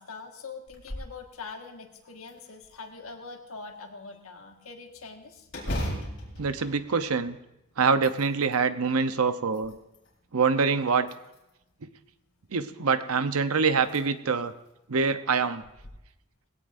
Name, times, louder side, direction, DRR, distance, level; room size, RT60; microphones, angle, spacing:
voice 1, 0.0-5.5, left 4 dB, 75° left, 3 dB, 1.7 m, -43 dB
sound 1, 0.7-1.2 1.6-1.7 2.3-3.1 5.5-7.5 7.9-8.6 9.3-10.1 11.0-11.7 13.1-13.2 13.8-14.0 14.5-14.6 15.6-15.9, equal, 55° left, 4.1 m, -37 dB
voice 2, 6.4-7.4 7.8-9.7 10.3-11.1 12.5-14.5 14.9-15.6, right 5 dB, 80° right, 11 dB, 0.8 m, -25 dB
19.5 x 16.5 x 2.6 m, 0.90 s
head